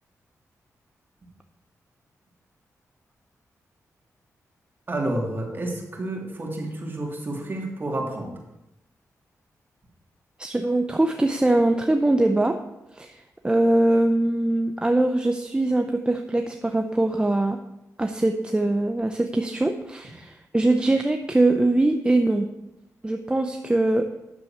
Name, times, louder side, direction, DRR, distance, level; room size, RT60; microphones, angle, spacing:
voice 1, 4.9-8.3, right 1 dB, 35° right, 0 dB, 3.0 m, -30 dB
voice 2, 10.4-12.6 12.9-17.6 18.0-22.5 23.0-24.1, right 2 dB, 15° right, 5 dB, 0.7 m, -22 dB
9.8 x 7.0 x 7.3 m, 0.92 s
cardioid pair, 85°, 6 cm